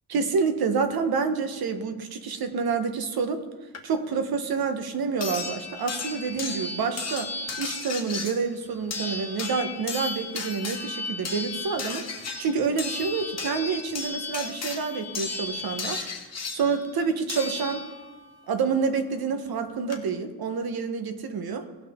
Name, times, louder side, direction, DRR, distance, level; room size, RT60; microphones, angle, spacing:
voice 1, 0.1-3.4 3.8-7.3 7.6-12.0 12.4-16.0 16.5-17.8 18.5-21.6, right 5 dB, 60° right, 8 dB, 1.1 m, -28 dB
sound 1, 3.7-3.8 5.2-18.2 19.5-19.6 19.9-20.0, left 4 dB, 40° left, 1.4 m, -34 dB
17.5 x 5.9 x 3.6 m, 1.2 s
wide cardioid pair, 140°, 41 cm